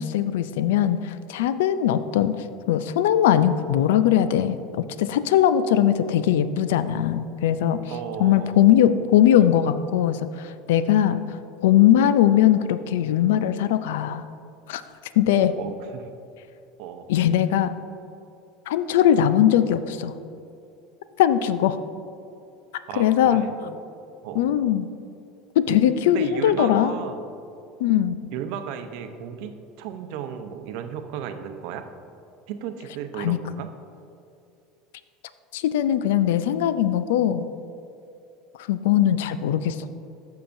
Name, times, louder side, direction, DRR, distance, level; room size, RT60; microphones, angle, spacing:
voice 1, 0.0-2.4 2.7-4.6 5.0-7.8 8.2-11.4 11.6-14.3 14.7-14.8 15.2-15.6 17.1-17.7 18.7-20.1 21.2-21.8 23.0-23.4 24.4-24.9 25.6-26.9 27.8-28.2 33.2-33.4 35.5-37.5 38.6-39.9, left 10 dB, 80° left, 13 dB, 0.3 m, -20 dB
voice 2, 7.9-8.6 15.5-16.1 16.8-17.1 22.9-23.7 24.2-24.6 26.1-27.2 28.3-31.8 32.5-33.7, right 8 dB, 70° right, 7 dB, 0.7 m, -34 dB
14.5 x 5.7 x 2.6 m, 2.6 s
supercardioid pair, 95°, 0 cm